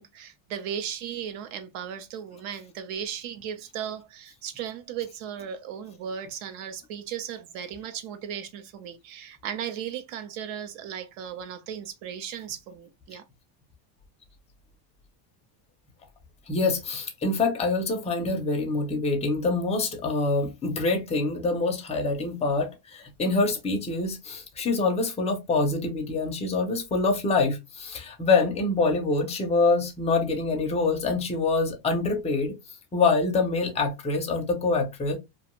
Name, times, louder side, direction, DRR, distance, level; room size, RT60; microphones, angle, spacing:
voice 1, 0.0-13.2, right 9 dB, 75° right, 0.8 m, -36 dB
voice 2, 16.5-32.6 32.9-35.2, left 3 dB, 15° left, 0.4 m, -25 dB
2.5 x 2.3 x 2.9 m
cardioid pair, 165°, 48 cm